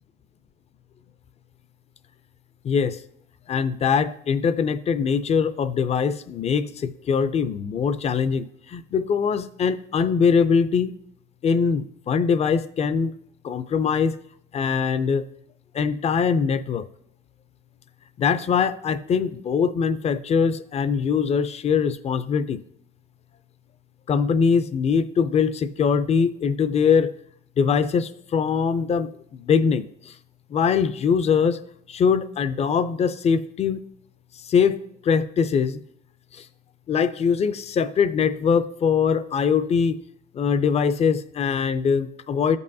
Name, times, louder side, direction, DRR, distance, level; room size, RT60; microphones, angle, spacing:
voice 1, 2.6-3.0 3.5-10.9 11.4-13.1 13.4-14.2 14.5-15.3 15.7-16.9 18.2-22.6 24.1-27.1 27.6-30.1 30.5-31.6 31.9-33.8 34.5-35.8 36.3-36.5 36.9-40.0 40.3-42.6, left 6 dB, 40° left, 14 dB, 0.5 m, -22 dB
14.0 x 5.4 x 2.7 m, 0.73 s
cardioid pair, 110°, 17 cm